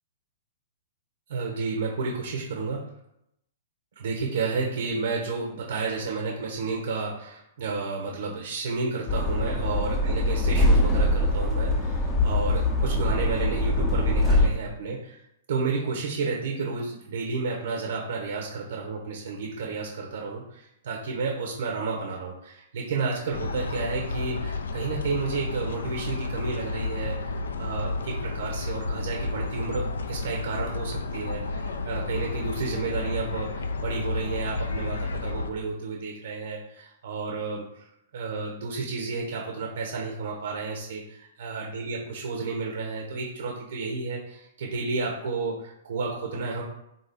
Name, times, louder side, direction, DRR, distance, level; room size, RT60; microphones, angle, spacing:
voice 1, 1.3-2.8 4.0-15.2 15.5-37.8 38.1-46.6, right 4 dB, 70° right, -1 dB, 0.6 m, -31 dB
sound 1, 9.1-14.5, left 1 dB, 20° left, 0.6 m, -23 dB
sound 2, 23.3-35.5, left 3 dB, 75° left, 0.3 m, -31 dB
3.6 x 2.6 x 3.3 m, 0.81 s
hypercardioid pair, 115°, 0 cm